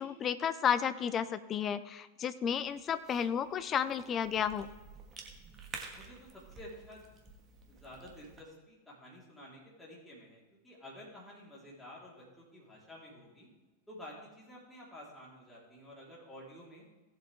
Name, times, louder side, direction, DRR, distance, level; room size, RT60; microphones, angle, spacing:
voice 1, 0.0-4.7, left 8 dB, 25° left, 13 dB, 0.6 m, -32 dB
Cough / Chewing mastication, 2.5-8.4, right 4 dB, 25° right, 1.6 m, -51 dB
voice 2, 5.9-7.1 7.7-13.5 13.9-16.9, left 1 dB, 5° left, -5 dB, 3.7 m, -51 dB
17.0 x 8.0 x 3.4 m, 1.2 s
figure-of-eight pair, 90°, 0 cm